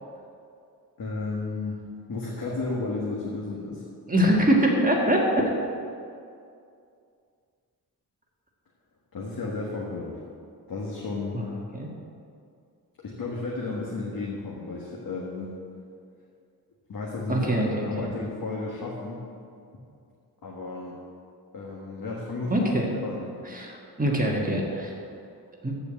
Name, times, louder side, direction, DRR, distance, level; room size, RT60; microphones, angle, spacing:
voice 1, 1.0-1.8 2.1-3.8 9.1-10.2 10.7-11.4 13.0-15.5 16.9-19.2 20.4-21.0 21.5-22.7 23.0-23.3, left 3 dB, 65° left, -4 dB, 1.7 m, -33 dB
voice 2, 4.1-5.3 11.3-11.4 11.7-11.9 17.3-17.9 22.5-22.9 23.5-24.9 25.6-25.7, right 1 dB, 20° right, -2 dB, 1.8 m, -23 dB
14.5 x 5.0 x 7.6 m, 2.4 s
wide cardioid pair, 105°, 37 cm